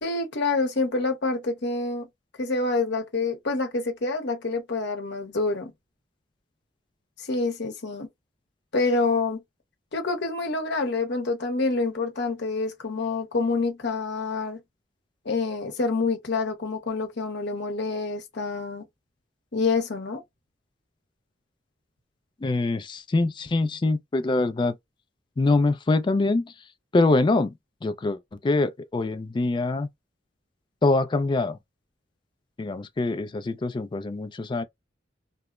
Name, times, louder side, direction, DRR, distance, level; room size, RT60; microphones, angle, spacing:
voice 1, 0.0-2.1 2.4-5.7 7.2-8.1 8.7-9.4 9.9-14.6 15.2-18.8 19.5-20.2, left 3 dB, 65° left, 0.8 m, -27 dB
voice 2, 22.4-24.8 25.4-26.5 26.9-27.5 27.8-29.9 30.8-31.6 32.6-34.6, left 2 dB, 25° left, 0.3 m, -24 dB
3.0 x 2.0 x 2.3 m
head